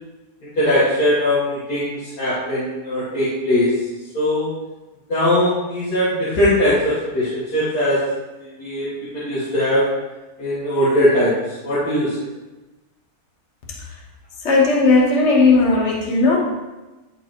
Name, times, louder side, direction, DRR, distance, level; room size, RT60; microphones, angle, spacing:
voice 1, 0.6-3.7 4.1-4.5 5.1-8.0 8.4-8.9 9.1-9.8 10.4-12.1, left 1 dB, 85° left, -11 dB, 2.2 m, -20 dB
voice 2, 14.4-16.4, left 3 dB, 50° left, -2 dB, 1.4 m, -16 dB
10.0 x 3.9 x 3.0 m, 1.1 s
omnidirectional pair, 1.7 m